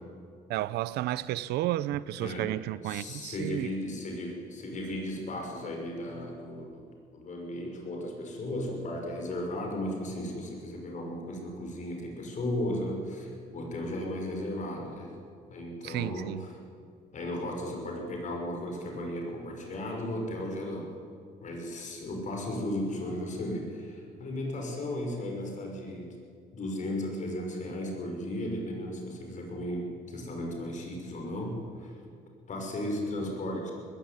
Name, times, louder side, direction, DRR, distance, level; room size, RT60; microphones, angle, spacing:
voice 1, 0.5-3.7 15.8-16.4, right 14 dB, 80° right, 0.7 m, -32 dB
voice 2, 2.2-2.5 2.8-6.9 7.1-15.1 15.5-16.3 17.1-20.9 21.4-26.1 26.5-31.9 32.5-33.7, left 1 dB, 45° left, 5.9 m, -35 dB
20.0 x 15.5 x 9.8 m
cardioid pair, 110°, 17 cm